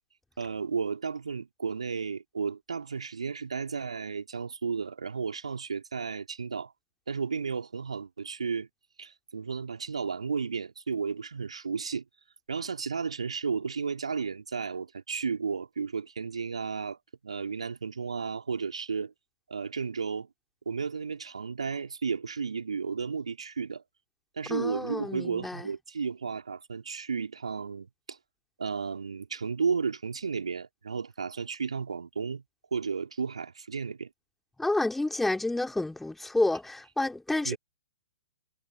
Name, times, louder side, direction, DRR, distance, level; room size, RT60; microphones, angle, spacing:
voice 1, 0.4-6.7 7.1-8.7 9.0-12.0 12.5-17.0 17.2-19.1 19.5-20.3 20.6-23.8 24.4-28.2 28.6-32.4 32.7-34.1 37.4-37.6, right 5 dB, 65° right, 3.3 m, -33 dB
voice 2, 24.5-25.7 34.6-37.6, left 2 dB, 5° left, 3.9 m, -29 dB
figure-of-eight pair, 115°, 3 cm